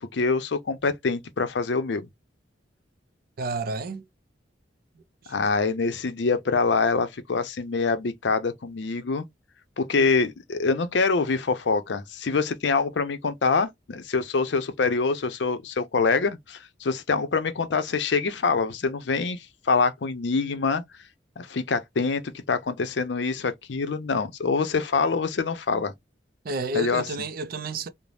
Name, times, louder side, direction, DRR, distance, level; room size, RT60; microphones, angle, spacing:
voice 1, 0.1-2.1 5.3-9.3 9.8-20.8 21.4-25.9 26.7-27.0, left 4 dB, 75° left, 0.5 m, -25 dB
voice 2, 3.4-4.1 5.0-5.4 26.4-27.9, right 2 dB, 55° right, 0.5 m, -31 dB
3.2 x 2.0 x 2.4 m
head